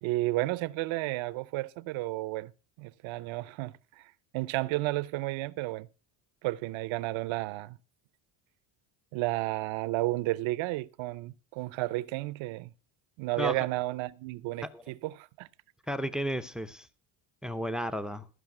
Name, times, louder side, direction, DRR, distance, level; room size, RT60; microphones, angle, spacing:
voice 1, 0.0-2.5 2.8-5.9 6.4-7.8 9.1-12.7 13.2-15.5, right 19 dB, 70° right, 0.8 m, -32 dB
voice 2, 15.9-16.9 17.4-18.3, equal, ahead, 0.6 m, -33 dB
14.5 x 5.2 x 6.1 m
cardioid pair, 105°, 49 cm